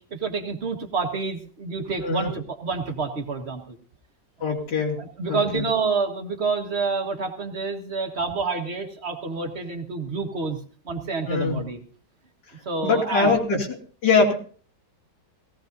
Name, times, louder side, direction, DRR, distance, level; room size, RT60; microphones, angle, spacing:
voice 1, 0.1-3.8 5.0-10.6 10.9-11.8 12.7-13.3, right 4 dB, 40° right, 4 dB, 1.7 m, -28 dB
voice 2, 2.0-2.3 4.4-5.0 5.3-5.6 11.3-11.6 12.8-14.3, left 4 dB, 85° left, -1 dB, 3.2 m, -23 dB
18.5 x 17.0 x 2.7 m, 0.43 s
omnidirectional pair, 1.9 m